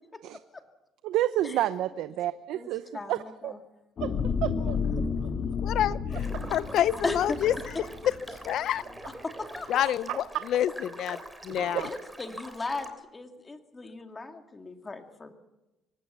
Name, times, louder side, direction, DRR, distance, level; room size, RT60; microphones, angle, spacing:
voice 1, 1.0-3.2 3.4-3.5 4.0-4.1 4.4-4.8 6.3-6.5 10.1-10.2 11.5-11.9, right 13 dB, 80° right, 12 dB, 0.7 m, -30 dB
voice 2, 2.5-3.6 4.6-5.2 7.0-7.4 9.2-9.9 11.8-15.3, left 3 dB, 20° left, 5 dB, 2.4 m, -37 dB
sound 1, 4.0-8.5 9.0-9.1, left 6 dB, 50° left, 2.2 m, -31 dB
voice 3, 5.6-7.5 8.4-8.8 9.7-11.2 11.4-11.9, left 11 dB, 65° left, 17 dB, 0.7 m, -28 dB
sound 2, 6.1-12.9, right 1 dB, 5° right, 3.6 m, -43 dB
24.0 x 19.0 x 7.0 m, 1.0 s
cardioid pair, 110°, 0 cm